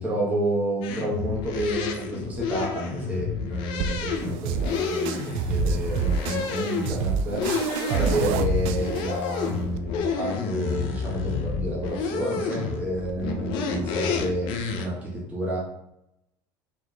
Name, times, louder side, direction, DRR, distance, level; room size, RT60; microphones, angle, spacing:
voice 1, 0.0-7.4 7.9-14.5 14.8-15.6, right 1 dB, 15° right, -4 dB, 1.0 m, -30 dB
sound 1, 0.8-14.9, left 5 dB, 50° left, 0.5 m, -30 dB
sound 2, 3.8-9.8, right 7 dB, 65° right, 0.4 m, -29 dB
4.1 x 3.3 x 3.1 m, 0.83 s
cardioid pair, 160°, 10 cm